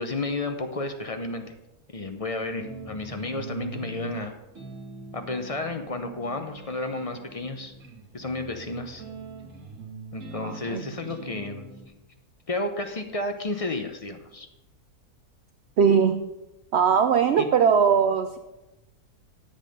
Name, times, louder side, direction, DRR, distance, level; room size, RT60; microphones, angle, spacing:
voice 1, 0.0-1.5 1.9-4.3 5.1-7.7 8.1-9.0 10.1-11.7 12.5-14.5 17.4-17.5, left 2 dB, 40° left, 6 dB, 0.5 m, -32 dB
sound 1, 2.6-11.9, right 4 dB, 50° right, 2.4 m, -43 dB
voice 2, 10.4-10.8 15.8-16.2 16.7-18.4, right 7 dB, 75° right, 9 dB, 0.6 m, -20 dB
10.5 x 7.7 x 5.2 m, 1.0 s
omnidirectional pair, 1.7 m